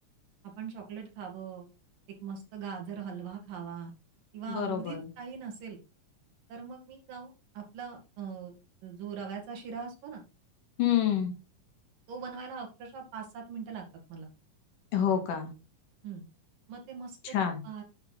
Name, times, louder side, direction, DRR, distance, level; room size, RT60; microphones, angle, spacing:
voice 1, 0.6-1.7 2.2-3.9 4.3-5.8 6.5-8.5 8.8-10.2 12.1-14.3 16.0-16.2 16.7-17.2 17.6-17.8, right 6 dB, 90° right, 0 dB, 4.1 m, -41 dB
voice 2, 4.5-5.1 10.8-11.3 14.9-15.5 17.2-17.6, left 9 dB, 75° left, 4 dB, 3.6 m, -28 dB
9.6 x 6.9 x 4.1 m, 0.30 s
omnidirectional pair, 3.8 m